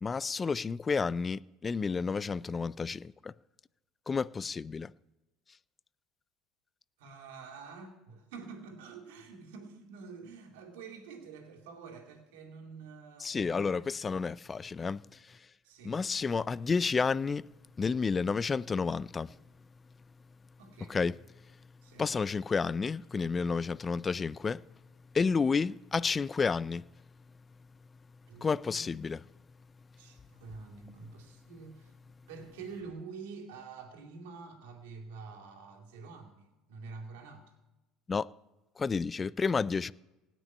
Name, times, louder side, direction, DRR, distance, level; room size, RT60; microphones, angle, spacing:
voice 1, 0.0-3.3 4.1-4.9 13.2-15.5 15.8-17.4 17.8-19.4 20.9-21.2 21.4-21.6 22.0-24.6 25.1-26.8 28.4-29.3 38.1-38.3 38.8-39.9, left 5 dB, 25° left, 0.4 m, -31 dB
voice 2, 7.0-13.8 15.6-16.0 20.6-21.0 21.8-22.1 28.3-28.9 30.0-31.9 32.3-37.5, right 4 dB, 85° right, 2.4 m, -47 dB
17.5 x 6.1 x 9.7 m
supercardioid pair, 90°, 0 cm